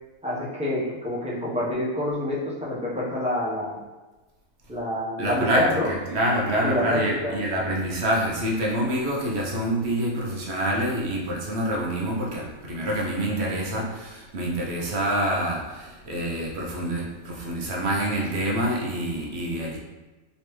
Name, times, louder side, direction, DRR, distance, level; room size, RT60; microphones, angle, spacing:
voice 1, 0.2-3.8 4.7-5.9 6.6-7.4, left 1 dB, 5° right, -7 dB, 0.5 m, -27 dB
voice 2, 5.2-19.8, right 1 dB, 60° right, -2 dB, 0.9 m, -26 dB
3.3 x 3.0 x 3.0 m, 1.2 s
omnidirectional pair, 1.4 m